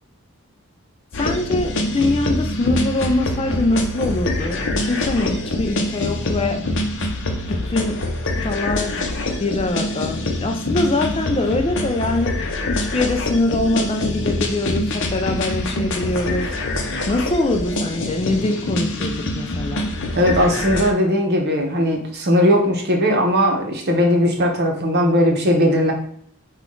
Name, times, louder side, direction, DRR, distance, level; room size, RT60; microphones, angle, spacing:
sound 1, 1.1-20.9, left 1 dB, 55° left, 0.7 m, -25 dB
voice 1, 1.2-6.7 7.5-8.1 8.4-9.1 9.4-16.5 17.1-20.0, left 2 dB, 25° left, 5 dB, 0.3 m, -23 dB
voice 2, 20.2-25.9, equal, 45° right, 1 dB, 0.9 m, -18 dB
5.8 x 2.4 x 3.7 m, 0.64 s
head